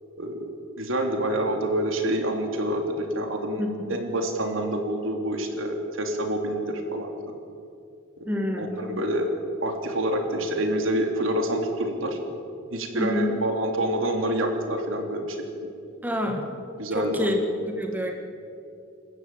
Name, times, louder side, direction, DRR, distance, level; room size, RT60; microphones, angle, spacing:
voice 1, 0.2-0.5 0.8-3.6 3.9-7.3 8.2-8.3 8.6-9.3 9.6-12.2 12.7-15.6 16.8-17.3, right 1 dB, 85° right, 3 dB, 3.3 m, -27 dB
voice 2, 3.6-3.9 8.3-9.0 12.9-13.3 16.0-16.5 16.9-17.4 17.7-18.1, left 1 dB, 10° right, 3 dB, 2.0 m, -28 dB
27.5 x 14.5 x 9.1 m, 2.6 s
head